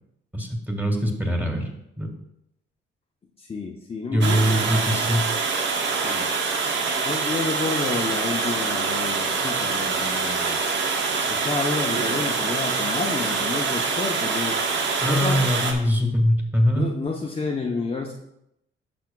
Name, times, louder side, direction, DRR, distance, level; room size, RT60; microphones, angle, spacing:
voice 1, 0.3-1.7 2.0-2.1 4.1-5.2 15.0-16.9, equal, 10° right, 2 dB, 1.9 m, -22 dB
voice 2, 3.4-4.6 6.0-6.3 7.0-10.6 11.3-14.6 15.1-15.5 16.8-18.1, left 4 dB, 30° left, 0 dB, 0.8 m, -30 dB
Water, 4.2-15.7, right 4 dB, 65° right, 1.1 m, -25 dB
10.5 x 6.2 x 2.3 m, 0.79 s
cardioid pair, 90°, 20 cm